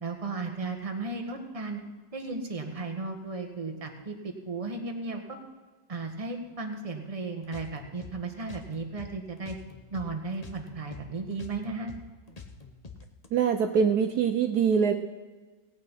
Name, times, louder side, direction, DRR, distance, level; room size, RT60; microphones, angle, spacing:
voice 1, 0.0-1.8 2.1-5.4 5.9-9.5 9.9-11.9, right 3 dB, 20° right, 3 dB, 1.5 m, -35 dB
sound 1, 7.4-10.1 10.3-13.3, left 4 dB, 30° left, 0.9 m, -46 dB
voice 2, 13.3-14.9, right 6 dB, 65° right, 6 dB, 1.2 m, -23 dB
18.0 x 8.7 x 5.7 m, 1.3 s
omnidirectional pair, 1.9 m